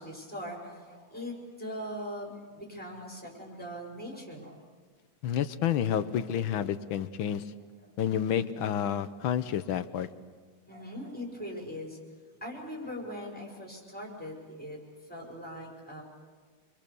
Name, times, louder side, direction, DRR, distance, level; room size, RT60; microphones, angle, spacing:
voice 1, 0.0-4.6 10.7-12.0 12.4-16.0, equal, 5° left, -1 dB, 5.7 m, -41 dB
voice 2, 5.2-7.4 8.0-10.1, left 9 dB, 80° left, 12 dB, 1.7 m, -29 dB
28.5 x 23.0 x 7.0 m, 1.6 s
omnidirectional pair, 2.2 m